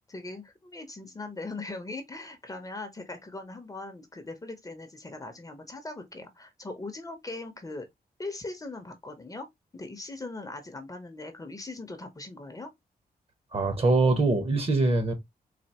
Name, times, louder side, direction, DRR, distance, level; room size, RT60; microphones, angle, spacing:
voice 1, 0.1-7.9 8.2-9.5 9.7-12.7, left 2 dB, 20° left, 0.8 m, -40 dB
voice 2, 13.5-15.1, right 2 dB, 35° right, 1.2 m, -23 dB
4.1 x 2.7 x 2.8 m
wide cardioid pair, 130°, 16 cm